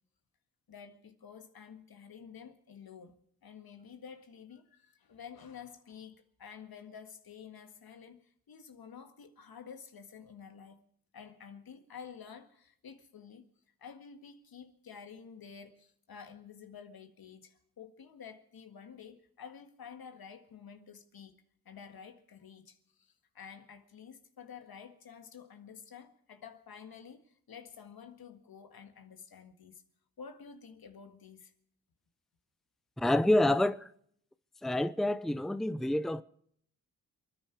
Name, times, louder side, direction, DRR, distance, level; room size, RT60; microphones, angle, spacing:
voice 1, 0.7-10.8 11.1-13.5 13.8-29.8 30.2-31.5, left 7 dB, 70° left, 1.9 m, -50 dB
voice 2, 33.0-33.9 34.6-36.2, left 1 dB, ahead, 0.7 m, -28 dB
27.5 x 10.0 x 4.8 m
cardioid pair, 50°, 37 cm